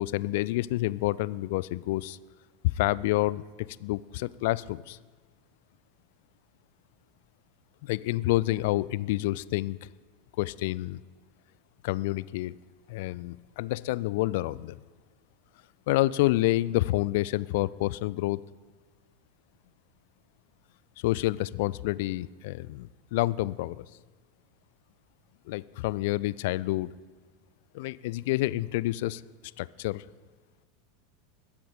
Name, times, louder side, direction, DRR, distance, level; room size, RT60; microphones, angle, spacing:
voice 1, 0.0-2.2 2.6-3.4 3.8-5.0 7.8-9.8 10.4-11.0 11.8-12.5 12.9-14.8 15.9-18.4 21.0-23.9 25.5-26.9 27.7-29.2 29.6-30.0, left 17 dB, 55° left, 20 dB, 0.3 m, -28 dB
20.5 x 8.6 x 5.0 m, 1.4 s
figure-of-eight pair, 85°, 0 cm